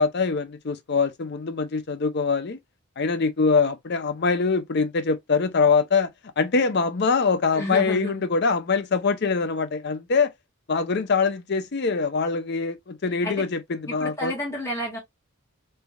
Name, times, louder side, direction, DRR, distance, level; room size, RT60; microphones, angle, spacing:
voice 1, 0.0-2.6 3.0-6.1 6.4-10.3 10.7-14.3, left 4 dB, 50° left, 0.5 m, -23 dB
voice 2, 7.5-8.2 13.2-13.4 13.9-15.0, left 1 dB, 15° left, 1.8 m, -31 dB
3.3 x 3.2 x 2.3 m
head